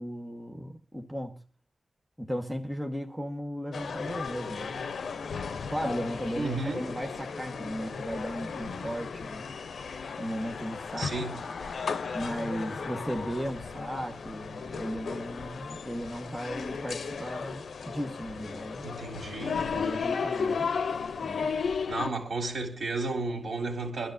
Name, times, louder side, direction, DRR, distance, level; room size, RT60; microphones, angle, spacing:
voice 1, 0.0-1.4 2.2-4.7 5.7-9.5 10.2-11.1 12.1-18.9 19.7-20.7 21.2-21.5, equal, 5° right, 1.0 m, -36 dB
sound 1, 3.7-22.1, left 5 dB, 90° left, 0.6 m, -35 dB
voice 2, 6.4-6.8 11.0-11.4 18.8-20.1 21.9-24.1, right 3 dB, 65° right, 3.7 m, -33 dB
sound 2, 9.4-14.5 14.8-14.9, left 4 dB, 60° left, 1.2 m, -43 dB
25.0 x 13.0 x 2.5 m
wide cardioid pair, 180°, 0 cm